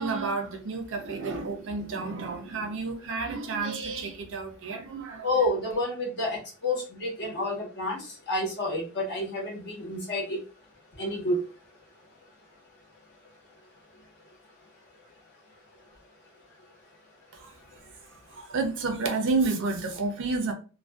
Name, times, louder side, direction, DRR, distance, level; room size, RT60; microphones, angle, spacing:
voice 1, 0.0-5.5 17.3-17.5 18.3-20.5, right 3 dB, 60° right, 0.5 m, -30 dB
voice 2, 5.2-8.0 8.3-10.4 11.0-11.4, left 1 dB, 50° left, 1.1 m, -29 dB
2.5 x 2.2 x 2.2 m
head